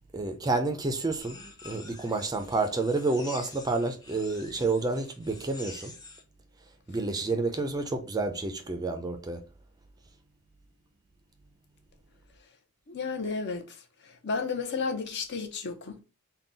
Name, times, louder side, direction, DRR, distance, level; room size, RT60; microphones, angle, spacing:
voice 1, 0.1-5.9 6.9-9.4, right 3 dB, 20° right, 0.4 m, -29 dB
sound 1, 1.2-6.2, left 3 dB, 20° left, 0.7 m, -47 dB
voice 2, 12.9-13.8 14.0-16.0, left 4 dB, 55° left, 0.7 m, -32 dB
3.8 x 2.2 x 3.9 m
head